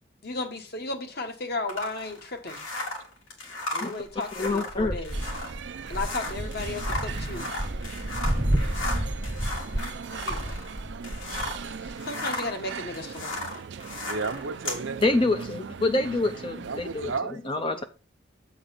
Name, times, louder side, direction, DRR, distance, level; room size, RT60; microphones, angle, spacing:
voice 1, 0.2-2.6 3.7-5.2 5.9-7.5 10.2-10.6 11.8-13.4, left 2 dB, 50° left, 1.2 m, -34 dB
sound 1, 1.7-11.7 12.0-14.8, left 2 dB, 85° left, 2.1 m, -36 dB
voice 2, 4.4-5.0 8.0-8.1 15.0-17.8, left 2 dB, 25° left, 0.4 m, -27 dB
sound 2, 4.4-11.9, right 1 dB, 10° right, 0.7 m, -31 dB
sound 3, 5.1-17.2, right 6 dB, 60° right, 0.4 m, -40 dB
voice 3, 14.1-15.2 16.6-17.9, right 4 dB, 80° right, 0.8 m, -33 dB
7.8 x 3.9 x 5.7 m
head